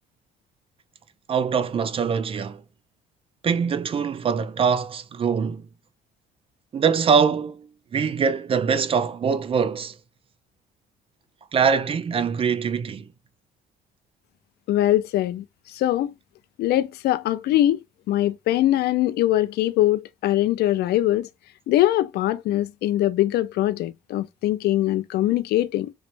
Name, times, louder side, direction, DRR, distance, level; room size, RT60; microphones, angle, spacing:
voice 1, 1.3-2.6 3.4-5.7 6.7-10.0 11.5-13.1, right 6 dB, 35° right, 0.4 m, -23 dB
voice 2, 14.7-15.4 15.7-16.1 16.6-17.8 18.1-21.3 21.7-25.9, left 14 dB, 70° left, 0.4 m, -22 dB
3.2 x 3.1 x 2.5 m
cardioid pair, 110°, 17 cm